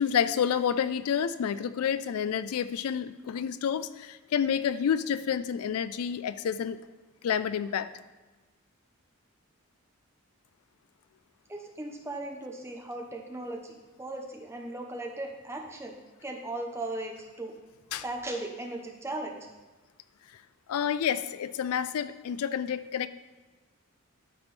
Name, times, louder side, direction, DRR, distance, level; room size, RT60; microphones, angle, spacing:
voice 1, 0.0-6.8 7.2-7.9 17.9-18.0 20.7-23.1, left 8 dB, 85° left, 14 dB, 0.3 m, -29 dB
voice 2, 11.5-16.0 16.2-17.5 18.0-19.5, right 2 dB, 10° right, 2 dB, 0.7 m, -37 dB
12.5 x 4.4 x 3.3 m, 1.2 s
head